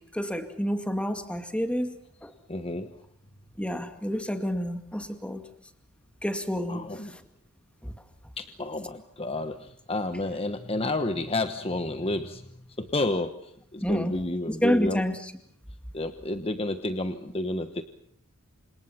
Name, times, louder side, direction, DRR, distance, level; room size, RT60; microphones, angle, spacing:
voice 1, 0.1-1.9 2.2-2.3 3.6-5.4 6.2-7.2 7.8-7.9 13.8-14.2 14.5-15.3, equal, 5° left, 7 dB, 2.2 m, -29 dB
voice 2, 2.5-3.0 6.7-7.2 8.4-12.5 12.8-15.0 15.9-17.8, left 2 dB, 25° left, 9 dB, 1.1 m, -30 dB
29.0 x 27.0 x 5.8 m, 0.66 s
head